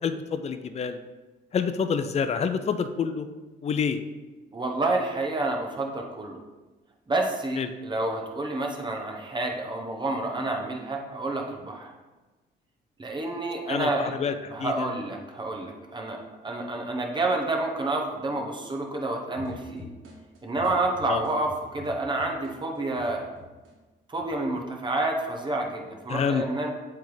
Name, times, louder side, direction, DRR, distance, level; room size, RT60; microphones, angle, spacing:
voice 1, 0.0-1.0 1.5-3.3 3.6-4.0 7.6-7.7 13.7-14.9 21.0-21.2 26.1-26.4, left 6 dB, 35° left, 9 dB, 0.4 m, -27 dB
voice 2, 4.5-6.4 7.1-11.9 13.0-14.1 14.5-16.2 16.4-19.9 20.4-23.3 24.1-26.7, right 2 dB, 25° right, 1 dB, 1.1 m, -29 dB
sound 1, 19.3-23.7 24.1-24.9, left 2 dB, 85° right, 1.5 m, -46 dB
7.7 x 3.5 x 3.9 m, 1.2 s
cardioid pair, 90°, 20 cm